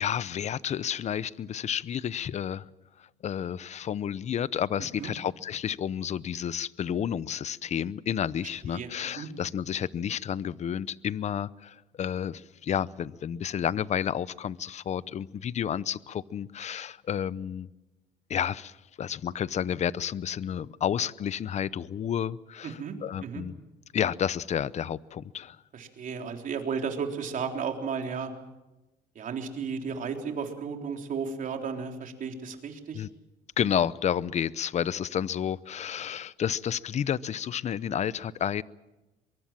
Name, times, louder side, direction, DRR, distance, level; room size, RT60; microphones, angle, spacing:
voice 1, 0.0-2.7 3.2-17.7 18.3-23.5 23.9-25.6 32.9-33.1 33.6-38.6, left 9 dB, 40° left, 19 dB, 0.7 m, -31 dB
voice 2, 22.6-23.0 23.2-23.4 25.7-28.3 29.2-33.1, right 6 dB, 50° right, 4 dB, 3.7 m, -34 dB
23.0 x 23.0 x 7.5 m, 1.0 s
cardioid pair, 110°, 17 cm